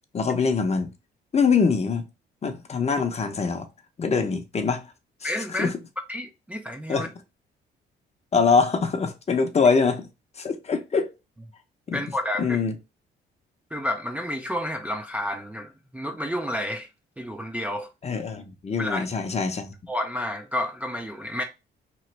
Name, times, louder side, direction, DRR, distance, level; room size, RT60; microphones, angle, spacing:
voice 1, 0.1-0.9 1.3-2.1 2.4-3.7 4.0-4.8 5.2-5.7 6.9-7.1 8.3-10.1 10.4-11.1 11.9-12.0 12.4-12.7 18.0-19.7, left 5 dB, 35° left, 0.7 m, -23 dB
voice 2, 5.2-5.7 6.1-7.1 11.9-12.6 13.7-16.9 17.2-17.9 18.8-19.0 19.9-21.4, left 1 dB, 5° right, 0.3 m, -30 dB
3.0 x 2.4 x 3.1 m
cardioid pair, 90°, 20 cm